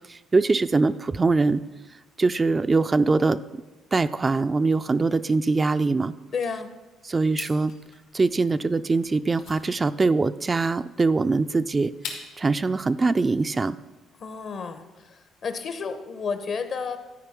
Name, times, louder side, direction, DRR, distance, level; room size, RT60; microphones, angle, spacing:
voice 1, 0.1-1.6 2.2-3.4 3.9-6.1 7.1-7.7 8.1-11.9 12.4-13.8, right 3 dB, 30° right, 12 dB, 0.3 m, -22 dB
voice 2, 6.3-6.8 14.2-17.0, left 5 dB, 55° left, 9 dB, 1.0 m, -31 dB
sound 1, 7.2-12.5, left 5 dB, 85° left, 2.0 m, -42 dB
12.0 x 4.7 x 5.9 m, 1.2 s
supercardioid pair, 75°, 0 cm